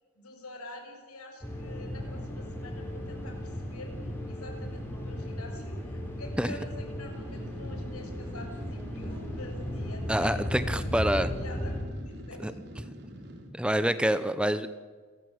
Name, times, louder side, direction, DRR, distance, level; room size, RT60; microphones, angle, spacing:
voice 1, 0.1-12.6 13.5-13.7, left 1 dB, 90° left, 4 dB, 6.3 m, -47 dB
sound 1, 1.4-11.8, left 1 dB, 10° left, 4.8 m, -36 dB
sound 2, 7.1-13.5, equal, 50° right, 3.5 m, -46 dB
voice 2, 10.1-11.3 12.4-12.5 13.5-14.7, right 1 dB, 5° right, 12 dB, 0.8 m, -26 dB
30.0 x 14.0 x 8.0 m, 1.5 s
head